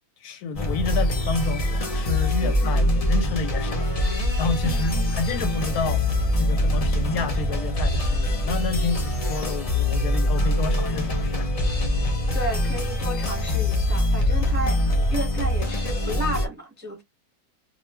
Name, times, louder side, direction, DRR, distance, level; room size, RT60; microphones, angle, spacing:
voice 1, 0.2-11.5, left 4 dB, 75° left, 1.0 m, -30 dB
sound 1, 0.5-16.4, left 1 dB, 50° left, 0.4 m, -23 dB
voice 2, 2.4-2.8 4.6-5.1 12.3-14.8 15.1-17.0, equal, 10° right, 0.8 m, -33 dB
2.5 x 2.3 x 3.1 m
omnidirectional pair, 1.7 m